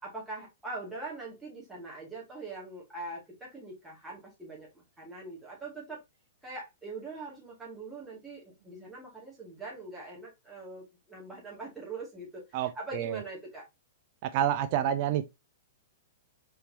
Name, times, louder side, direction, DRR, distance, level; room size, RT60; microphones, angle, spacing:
voice 1, 0.0-6.0 6.4-13.7, right 3 dB, 5° right, 2.1 m, -42 dB
voice 2, 12.5-13.2 14.2-15.3, right 10 dB, 50° right, 0.4 m, -29 dB
4.2 x 3.7 x 2.7 m
hypercardioid pair, 125°, 0 cm